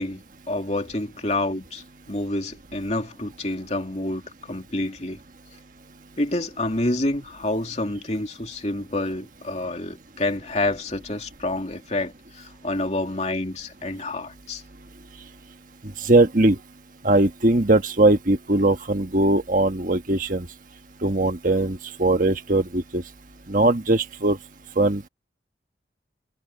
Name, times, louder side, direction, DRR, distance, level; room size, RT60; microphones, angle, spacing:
voice 1, 0.0-5.2 6.2-14.6, left 1 dB, 35° left, 2.8 m, -28 dB
voice 2, 15.8-16.6 17.0-20.5 21.0-23.0 23.5-24.4 24.8-25.0, right 2 dB, 45° right, 1.4 m, -20 dB
head